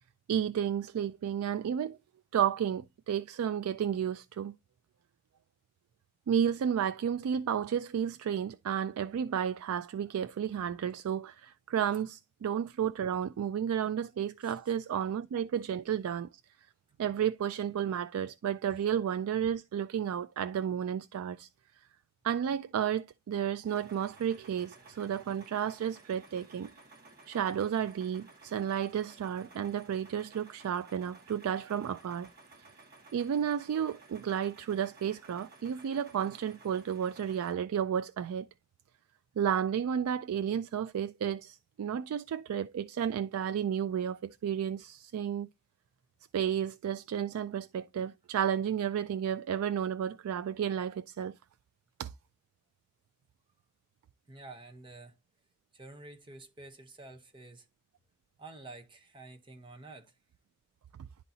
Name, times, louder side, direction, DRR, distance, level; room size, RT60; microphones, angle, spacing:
voice 1, 0.3-2.0 2.3-4.5 6.3-16.3 17.0-21.5 22.2-26.7 27.3-32.3 33.1-38.5 39.4-45.5 46.3-51.4 52.0-52.1, right 8 dB, 85° right, 0.3 m, -32 dB
sound 1, 23.7-37.5, right 3 dB, 40° right, 1.6 m, -56 dB
voice 2, 54.3-55.1 55.7-57.7 58.4-60.1, right 2 dB, 20° right, 0.8 m, -49 dB
11.0 x 4.1 x 2.7 m
head